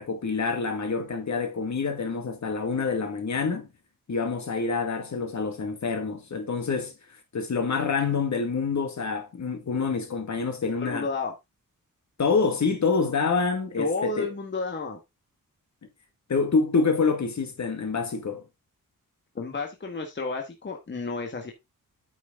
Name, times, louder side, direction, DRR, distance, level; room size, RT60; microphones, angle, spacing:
voice 1, 0.0-3.7 4.1-6.9 7.3-11.1 12.2-14.3 16.3-18.4, left 4 dB, 55° left, 2.1 m, -27 dB
voice 2, 10.8-11.3 13.8-15.0 19.3-21.5, left 3 dB, 30° left, 1.5 m, -31 dB
8.9 x 6.3 x 3.6 m
wide cardioid pair, 155°, 35 cm